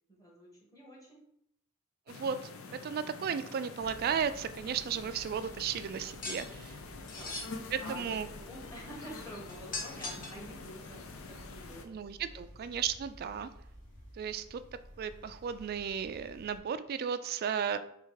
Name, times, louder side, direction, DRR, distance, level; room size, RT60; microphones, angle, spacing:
voice 1, 0.1-1.3 7.1-12.0 12.3-12.6, equal, 15° left, -4 dB, 1.5 m, -49 dB
sound 1, 2.1-11.8, left 3 dB, 85° left, 0.6 m, -47 dB
voice 2, 2.1-2.5 2.8-6.8 7.7-8.3 11.8-13.5 14.2-14.6 15.0-17.8, right 7 dB, 50° right, 12 dB, 0.3 m, -34 dB
sound 2, 3.8-16.6, equal, 65° left, 1.5 m, -54 dB
sound 3, 6.2-6.5 7.1-7.5 9.5-10.4, left 3 dB, 40° left, 0.9 m, -39 dB
3.4 x 3.3 x 4.7 m, 0.73 s
head